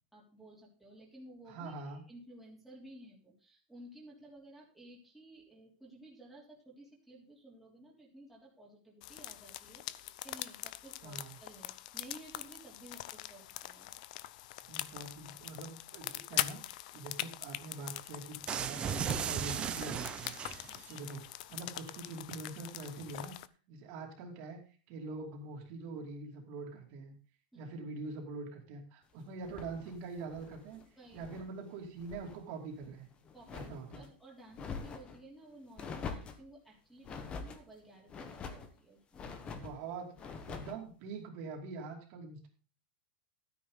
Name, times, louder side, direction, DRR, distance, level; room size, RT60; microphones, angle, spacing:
voice 1, 0.1-13.9 20.7-20.9 27.5-27.7 31.0-31.2 33.3-33.7 33.9-39.3 40.5-40.6, right 1 dB, ahead, -5 dB, 3.1 m, -55 dB
voice 2, 1.5-2.0 11.0-11.4 14.7-18.8 19.1-20.3 20.9-21.2 21.5-23.3 23.7-24.6 24.9-27.1 27.5-30.8 31.1-33.1 33.5-34.0 39.4-42.5, right 3 dB, 40° right, 1 dB, 2.7 m, -44 dB
sound 1, 9.0-23.5, left 15 dB, 55° left, 0.6 m, -43 dB
sound 2, 18.5-20.9, right 8 dB, 20° right, 0.8 m, -36 dB
sound 3, 29.4-31.5 31.8-32.4 32.8-34.1 34.5-35.2 35.8-36.4 37.0-37.6 38.1-38.7 39.1-39.8 40.2-40.8, left 5 dB, 20° left, 1.2 m, -45 dB
13.0 x 9.5 x 3.9 m, 0.37 s
supercardioid pair, 165°, 5 cm